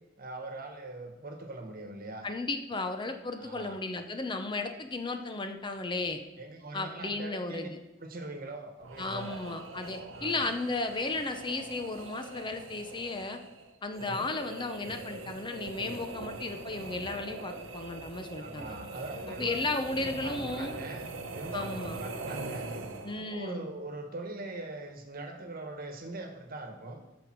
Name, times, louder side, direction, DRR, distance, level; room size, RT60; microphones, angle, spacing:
voice 1, 0.2-2.3 3.4-3.8 6.4-7.7 8.0-9.4 10.1-10.5 14.0-14.3 18.4-19.6 19.8-21.0 21.3-22.7 23.1-27.0, right 2 dB, 50° right, 5 dB, 1.4 m, -42 dB
voice 2, 2.2-6.2 6.7-7.8 9.0-13.4 13.8-18.7 19.4-20.7 21.5-22.0 23.0-23.7, left 3 dB, 25° left, 7 dB, 0.7 m, -34 dB
sound 1, 8.8-23.4, right 3 dB, 80° right, 0.9 m, -42 dB
13.5 x 5.2 x 4.6 m, 0.97 s
head